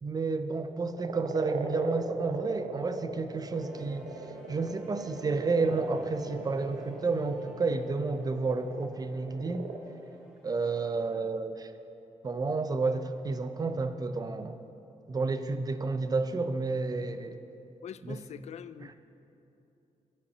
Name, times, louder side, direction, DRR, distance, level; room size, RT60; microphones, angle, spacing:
voice 1, 0.0-4.1 4.5-9.7 10.4-11.7 12.2-14.6 15.1-17.4 18.0-18.2 18.8-18.9, right 3 dB, 30° right, 10 dB, 0.5 m, -31 dB
sound 1, 0.6-9.8, right 4 dB, 90° right, 0.8 m, -40 dB
sound 2, 3.5-11.0, right 1 dB, 5° right, 1.8 m, -52 dB
voice 2, 17.8-19.0, left 9 dB, 55° left, 15 dB, 0.4 m, -43 dB
8.4 x 8.3 x 6.6 m, 2.9 s
cardioid pair, 115°, 13 cm